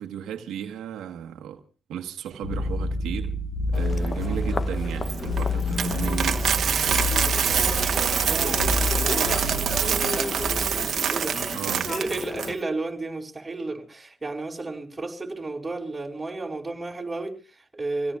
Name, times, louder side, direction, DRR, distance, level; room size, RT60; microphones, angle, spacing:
voice 1, 0.0-1.6 1.9-3.4 3.7-6.6 11.5-12.0, right 9 dB, 85° right, 1.3 m, -35 dB
sound 1, 2.4-10.9, left 2 dB, 75° left, 4.6 m, -29 dB
Human voice, 3.7-12.6, left 3 dB, 30° left, 0.8 m, -34 dB
voice 2, 4.1-4.5 7.1-10.7 11.1-11.4 11.9-18.2, right 2 dB, 15° right, 4.9 m, -33 dB
Coin (dropping), 5.0-12.5, right 8 dB, 60° right, 1.3 m, -25 dB
27.5 x 17.0 x 2.4 m
cardioid pair, 90°, 0 cm